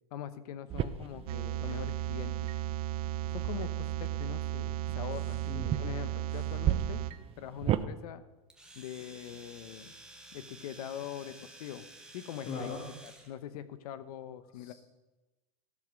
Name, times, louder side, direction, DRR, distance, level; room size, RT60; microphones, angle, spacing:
voice 1, 0.1-2.5 3.3-5.4 5.8-7.1 7.4-8.2 8.7-10.0 10.3-11.9 12.1-12.7 13.0-14.7, left 10 dB, 75° left, 13 dB, 1.0 m, -42 dB
sound 1, 0.7-7.8, right 11 dB, 30° right, 0.6 m, -37 dB
sound 2, 1.3-7.1, right 14 dB, 75° right, 0.8 m, -35 dB
voice 2, 5.5-5.8 12.5-12.9 14.5-14.7, left 4 dB, 50° left, 0 dB, 2.0 m, -39 dB
Domestic sounds home sounds, 8.5-13.3, right 2 dB, 5° right, 1.6 m, -52 dB
14.5 x 7.3 x 6.0 m, 1.1 s
supercardioid pair, 135°, 20 cm